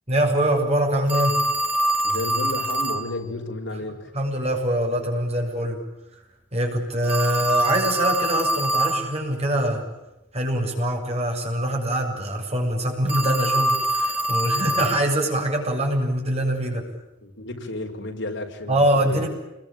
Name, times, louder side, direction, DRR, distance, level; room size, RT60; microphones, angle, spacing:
voice 1, 0.1-1.4 4.1-5.8 6.5-9.8 10.3-16.9 18.7-19.3, right 1 dB, 35° right, 2 dB, 7.4 m, -23 dB
Telephone, 1.1-3.1 7.0-9.1 13.1-15.1, right 1 dB, 10° right, 2.7 m, -24 dB
voice 2, 2.0-4.1 14.5-14.6 17.2-19.2, left 2 dB, 70° left, 3 dB, 5.2 m, -32 dB
29.0 x 22.5 x 9.1 m, 0.97 s
head